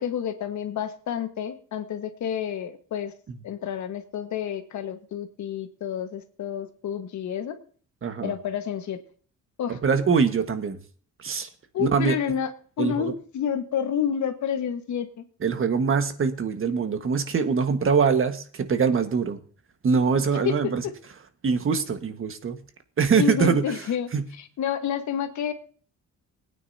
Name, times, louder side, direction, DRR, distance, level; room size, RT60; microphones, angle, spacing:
voice 1, 0.0-3.1 3.4-7.6 8.2-9.0 9.6-9.8 11.7-12.5 12.8-15.2 20.4-20.9 23.2-25.5, left 8 dB, 70° left, 7 dB, 1.6 m, -29 dB
voice 2, 8.0-8.3 9.7-10.8 11.2-11.5 11.8-12.1 12.8-13.1 15.4-19.4 19.8-20.8 21.4-22.6 23.0-23.7 24.1-24.3, right 5 dB, 45° right, 8 dB, 1.6 m, -23 dB
20.0 x 9.4 x 2.8 m, 0.43 s
cardioid pair, 90°, 30 cm